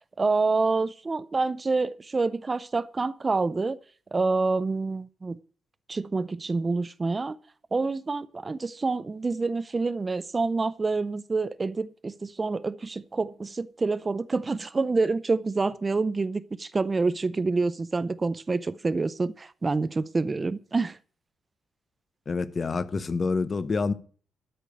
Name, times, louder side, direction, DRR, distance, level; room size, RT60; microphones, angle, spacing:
voice 1, 0.2-3.8 4.1-5.4 5.9-7.4 7.7-21.0, right 3 dB, 20° right, 0.5 m, -27 dB
voice 2, 22.3-23.9, left 4 dB, 30° left, 0.8 m, -27 dB
13.0 x 5.1 x 9.0 m
cardioid pair, 140°, 0 cm